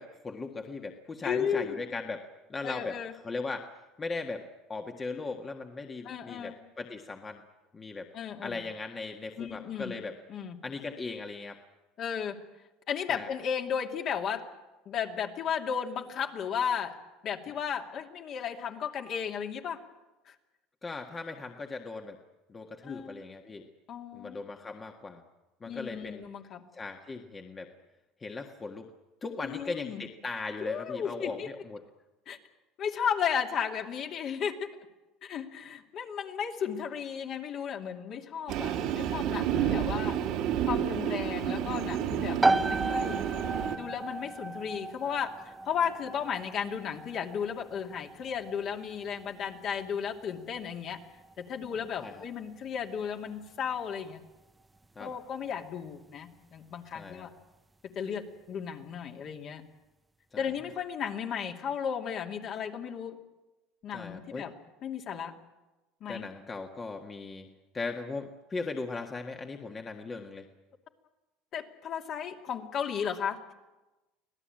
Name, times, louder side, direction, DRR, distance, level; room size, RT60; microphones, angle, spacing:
voice 1, 0.0-3.0 3.2-3.7 4.0-7.4 7.7-8.1 8.4-10.1 10.6-11.6 13.1-13.3 20.8-22.2 22.5-23.7 24.1-25.2 25.6-26.3 26.7-27.7 28.2-28.9 29.2-31.8 39.5-39.9 52.0-52.2 54.9-55.1 56.9-57.3 60.3-60.5 63.9-64.4 66.1-67.5 67.7-70.5, left 3 dB, 20° left, 3 dB, 1.6 m, -38 dB
voice 2, 1.2-1.8 2.6-3.1 6.0-6.6 8.1-8.7 9.4-9.9 10.3-10.6 12.0-12.4 12.9-14.5 14.9-17.0 17.2-19.8 20.2-20.3 22.8-23.2 23.9-24.4 25.6-26.6 29.4-30.0 30.6-31.5 32.3-32.4 32.8-34.7 35.2-40.2 40.6-43.2 43.8-51.0 51.4-54.2 55.0-57.3 57.8-59.6 60.4-63.2 63.8-64.5 64.8-65.3 66.0-66.3 71.5-73.5, left 7 dB, 50° left, 3 dB, 2.6 m, -34 dB
Train, 38.5-43.8, right 9 dB, 65° right, 2.3 m, -30 dB
sound 1, 42.4-56.9, right 2 dB, 10° right, 0.7 m, -35 dB
25.0 x 17.0 x 8.9 m, 1.1 s
supercardioid pair, 120°, 0 cm